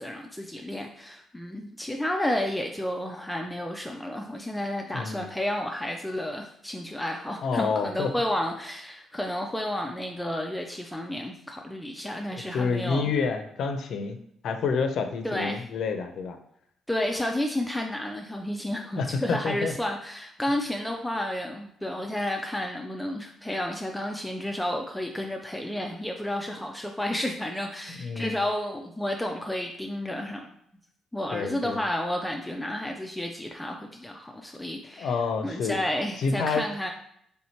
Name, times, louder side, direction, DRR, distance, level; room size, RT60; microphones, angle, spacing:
voice 1, 0.0-13.1 15.2-15.6 16.9-30.5 31.1-35.2 35.4-36.9, left 1 dB, 5° left, 2 dB, 0.4 m, -31 dB
voice 2, 4.9-5.3 7.4-8.1 12.3-14.2 14.4-16.4 19.0-19.7 28.0-28.4 31.3-31.8 35.0-35.8 36.2-36.6, left 5 dB, 70° left, 7 dB, 0.5 m, -28 dB
3.5 x 2.8 x 4.3 m, 0.72 s
cardioid pair, 90°, 0 cm